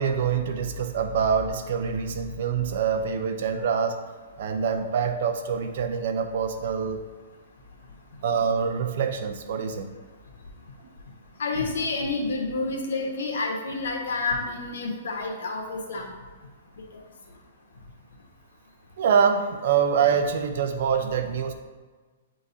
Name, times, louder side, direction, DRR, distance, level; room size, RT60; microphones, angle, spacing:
voice 1, 0.0-4.0 4.4-7.0 8.2-9.9 19.0-21.5, right 6 dB, 60° right, 7 dB, 0.6 m, -25 dB
voice 2, 11.4-16.1, left 3 dB, 75° left, 1 dB, 1.3 m, -29 dB
9.2 x 3.8 x 2.8 m, 1.4 s
hypercardioid pair, 160°, 0 cm